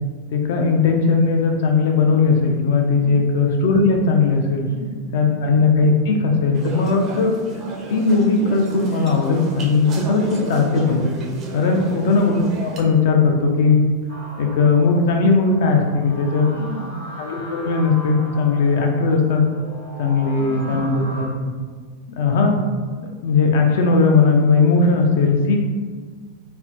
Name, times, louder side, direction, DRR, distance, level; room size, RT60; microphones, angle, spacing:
voice 1, 0.3-4.7 5.1-7.3 7.9-11.0 11.5-13.8 14.4-16.5 17.2-19.5 20.0-21.5 22.1-22.6 23.2-25.6, left 4 dB, 55° left, 2 dB, 0.4 m, -18 dB
voice 2, 4.6-5.4 11.7-12.1 16.4-17.0 20.3-20.8, equal, 85° right, -3 dB, 0.6 m, -34 dB
sound 1, 6.5-12.8, right 2 dB, 30° right, 0.4 m, -34 dB
sound 2, 14.1-21.2, equal, 80° left, 0.8 m, -38 dB
3.2 x 2.1 x 2.5 m, 1.5 s
figure-of-eight pair, 90°, 0 cm